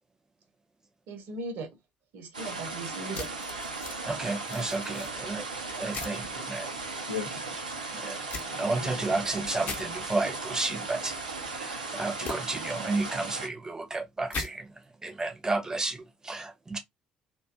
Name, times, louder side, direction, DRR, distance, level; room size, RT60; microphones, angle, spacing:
voice 1, 1.1-1.7 2.1-3.3, right 3 dB, 55° right, 0.7 m, -38 dB
sound 1, 2.3-13.5, right 3 dB, 85° right, 0.4 m, -37 dB
sound 2, 3.1-4.0 4.4-5.1 5.9-6.2 8.3-8.5 9.6-9.8 12.2-12.4 14.3-14.5, left 4 dB, 45° left, 0.8 m, -37 dB
voice 2, 4.1-5.5 5.8-6.7 7.9-8.2 8.6-11.2 11.5-14.7 15.0-16.8, right 3 dB, 15° right, 0.6 m, -32 dB
voice 3, 7.0-9.1 9.6-9.7, left 6 dB, 90° left, 0.5 m, -41 dB
2.5 x 2.2 x 2.3 m
figure-of-eight pair, 50°, 4 cm